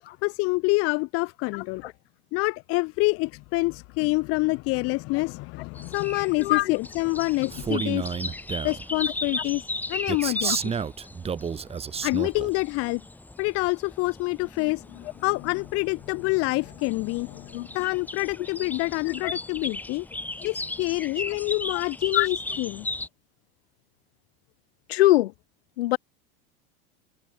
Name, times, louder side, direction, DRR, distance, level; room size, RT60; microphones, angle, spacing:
voice 1, 0.2-1.8 2.3-8.3 8.6-9.6 9.9-10.7 12.0-13.0 13.4-20.1 20.4-22.9, left 24 dB, 50° left, 1.0 m, -27 dB
voice 2, 1.5-1.9 6.4-6.8 10.4-10.6 17.5-17.7 19.1-19.3 20.4-20.5 22.1-22.3 24.9-25.3 25.8-26.0, left 16 dB, 80° left, 2.2 m, -23 dB
sound 1, 5.8-23.1, left 2 dB, 5° left, 1.2 m, -37 dB
Male speech man speaking, 7.5-8.8 10.1-12.5, right 6 dB, 20° right, 1.7 m, -30 dB
supercardioid pair, 120°, 31 cm